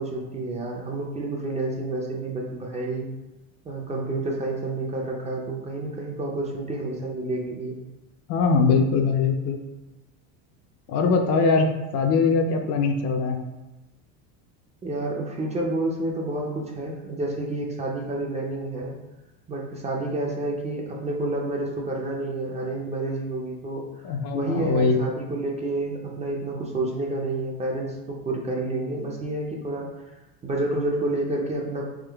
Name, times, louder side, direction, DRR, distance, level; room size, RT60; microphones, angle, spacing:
voice 1, 0.0-3.1 3.6-7.7 14.8-18.9 19.5-29.9 30.4-31.9, right 2 dB, 20° right, -1 dB, 0.4 m, -29 dB
voice 2, 8.3-9.6 10.9-13.4 24.0-25.0, left 4 dB, 45° left, 4 dB, 0.5 m, -22 dB
3.7 x 3.2 x 3.4 m, 1.0 s
supercardioid pair, 130°, 38 cm